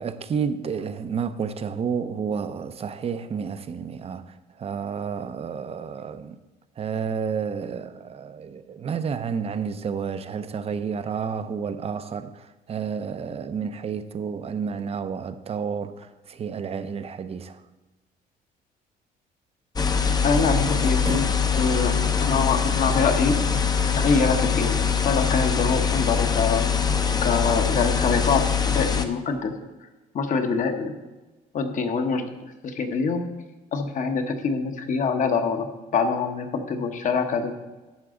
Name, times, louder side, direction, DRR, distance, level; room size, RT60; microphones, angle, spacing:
voice 1, 0.0-6.4 6.8-17.6 20.6-21.2, right 6 dB, 35° right, 0.7 m, -30 dB
sound 1, 19.8-29.1, left 6 dB, 25° left, 0.7 m, -23 dB
voice 2, 20.2-21.3 21.5-23.4 23.9-26.6 27.2-29.5 30.1-30.9 31.5-32.3 32.6-33.3 33.7-37.5, left 5 dB, 50° left, 1.1 m, -25 dB
11.5 x 7.5 x 3.8 m
cardioid pair, 110°, 17 cm